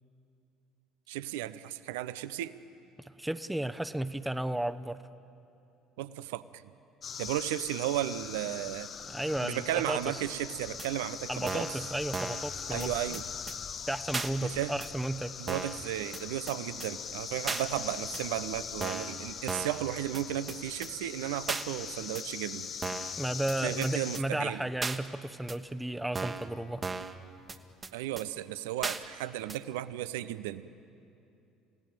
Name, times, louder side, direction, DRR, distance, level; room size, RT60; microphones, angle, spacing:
voice 1, 1.1-2.6 6.0-6.6 7.2-8.9 9.4-11.7 12.7-13.2 14.4-14.8 15.4-22.7 23.6-24.6 27.9-30.7, right 13 dB, 75° right, 15 dB, 0.7 m, -34 dB
voice 2, 3.0-5.0 9.1-10.2 11.3-12.9 13.9-15.3 23.2-26.8, right 1 dB, 5° right, 11 dB, 1.0 m, -33 dB
sound 1, 7.0-24.2, left 7 dB, 45° left, 1.0 m, -41 dB
sound 2, 10.8-10.9 11.5-11.8 12.1-12.5 12.8-12.9 13.1-13.2 13.5-13.6 14.1-14.3 14.8-14.9 15.5-15.8 16.1-16.2 16.5-16.6 16.8-16.9 17.5-17.6 18.1-18.2 18.8-19.1 19.5-19.8 20.1-20.2 20.5-20.6 20.8-20.9 21.5-21.6 22.1-22.2 22.8-23.1 23.5-23.6 23.8-23.9 24.1-24.2 24.8-25.0 25.5-25.6 26.1-26.5 26.8-27.1 27.5-27.6 27.8-27.9 28.2-28.3 28.8-29.0 29.5-29.6, right 4 dB, 30° right, 1.5 m, -35 dB
30.0 x 17.0 x 9.1 m, 2.8 s
hypercardioid pair, 60°, 0 cm